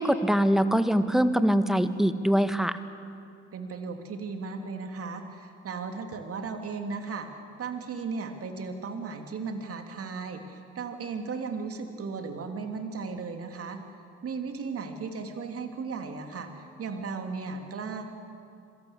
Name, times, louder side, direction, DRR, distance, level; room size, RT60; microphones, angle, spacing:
voice 1, 0.0-2.8, equal, ahead, 11 dB, 1.6 m, -23 dB
voice 2, 3.5-7.3 7.6-13.8 14.2-18.1, right 4 dB, 40° right, 5 dB, 3.3 m, -36 dB
26.5 x 21.5 x 8.2 m, 2.5 s
figure-of-eight pair, 55°, 35 cm